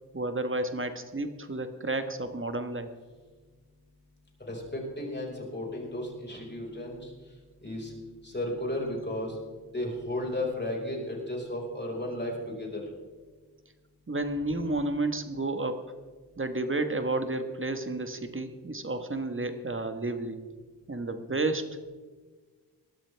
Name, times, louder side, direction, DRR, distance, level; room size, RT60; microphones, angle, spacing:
voice 1, 0.1-2.9 14.1-15.9 16.4-20.4 20.9-21.8, right 2 dB, 30° right, 8 dB, 1.3 m, -31 dB
voice 2, 4.4-7.1 7.6-7.9 8.2-9.4 9.7-12.8, left 1 dB, 25° left, -1 dB, 5.0 m, -34 dB
19.5 x 13.0 x 3.4 m, 1.4 s
cardioid pair, 65°, 40 cm